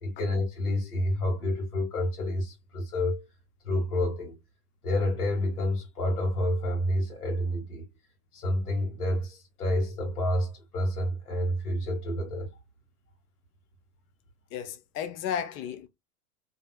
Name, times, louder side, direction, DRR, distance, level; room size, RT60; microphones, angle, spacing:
voice 1, 0.0-3.2 3.6-4.4 4.8-7.9 8.3-12.5, left 1 dB, 80° left, 1.4 m, -29 dB
voice 2, 14.5-15.9, left 8 dB, 30° left, 0.4 m, -33 dB
2.7 x 2.4 x 2.2 m
hypercardioid pair, 90°, 45 cm